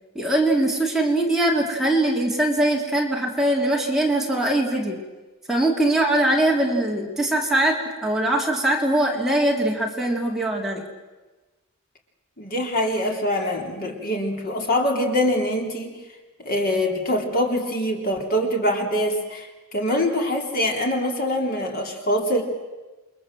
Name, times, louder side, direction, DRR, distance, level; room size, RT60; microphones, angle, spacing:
voice 1, 0.1-5.0 5.5-10.8, right 1 dB, ahead, -2 dB, 3.0 m, -22 dB
voice 2, 12.4-16.0 16.4-22.4, left 1 dB, 40° left, 1 dB, 3.6 m, -24 dB
29.0 x 22.5 x 7.6 m, 1.2 s
head